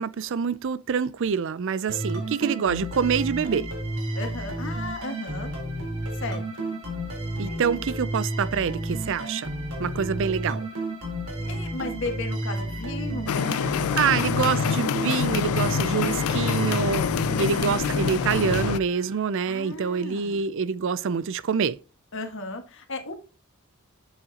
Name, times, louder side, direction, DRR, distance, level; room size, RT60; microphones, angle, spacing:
voice 1, 0.0-3.7 7.4-9.5 9.8-10.7 14.0-17.1 17.4-21.8, right 6 dB, 60° right, 0.4 m, -26 dB
sound 1, 1.9-19.4, right 1 dB, 90° right, 3.9 m, -32 dB
voice 2, 4.1-5.5 6.1-6.7 7.4-7.6 9.8-10.0 11.4-14.2 17.3-17.5 19.5-20.4 22.1-23.2, left 2 dB, 60° left, 1.7 m, -36 dB
sound 2, 13.3-18.8, left 7 dB, 85° left, 0.3 m, -26 dB
7.9 x 7.1 x 2.9 m
head